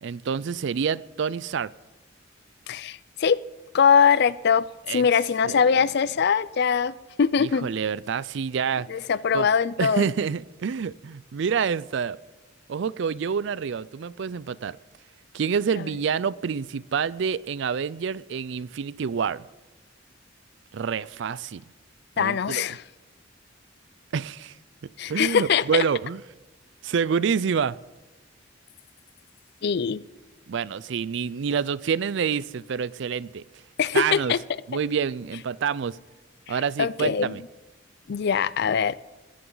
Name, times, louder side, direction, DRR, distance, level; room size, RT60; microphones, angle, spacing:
voice 1, 0.0-1.7 4.9-5.1 5.4-5.6 7.4-8.9 9.3-9.5 9.8-12.2 12.7-14.8 15.3-19.4 20.7-21.6 22.2-22.7 24.1-24.5 25.1-26.2 26.8-27.8 30.5-33.4 33.9-34.3 34.7-36.0 36.5-37.4, right 6 dB, 65° right, 0.4 m, -27 dB
voice 2, 2.7-3.4 3.7-7.7 8.9-10.1 15.7-15.9 22.2-22.8 25.0-25.8 29.6-30.0 33.8-34.4 36.5-37.4 38.1-38.9, left 6 dB, 55° left, 0.4 m, -22 dB
20.5 x 14.0 x 3.9 m
head